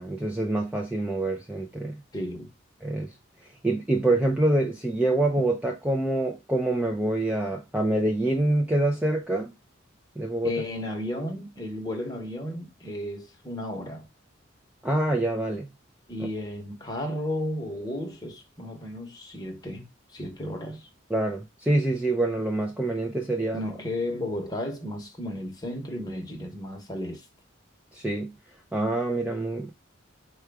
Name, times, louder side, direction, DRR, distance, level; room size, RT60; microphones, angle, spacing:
voice 1, 0.0-1.9 2.8-3.1 3.6-9.5 10.2-10.5 14.8-15.7 21.1-23.6 27.9-28.3 28.7-29.7, right 2 dB, 5° right, 0.4 m, -26 dB
voice 2, 2.1-2.5 10.4-14.1 16.1-20.9 23.5-27.3, left 1 dB, 20° left, 0.9 m, -33 dB
4.5 x 2.3 x 4.6 m
head